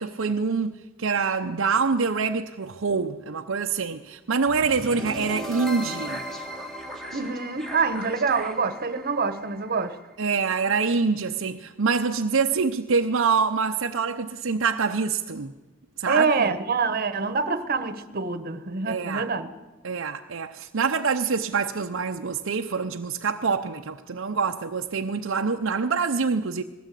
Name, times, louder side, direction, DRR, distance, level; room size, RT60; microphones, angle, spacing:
voice 1, 0.0-6.2 10.2-15.5 16.0-16.5 18.9-19.3 19.8-26.6, right 5 dB, 65° right, 0.7 m, -25 dB
sound 1, 4.5-10.5, right 1 dB, ahead, 1.9 m, -37 dB
voice 2, 7.1-10.0 16.1-19.5, right 4 dB, 45° right, 1.2 m, -26 dB
20.0 x 16.5 x 8.3 m
head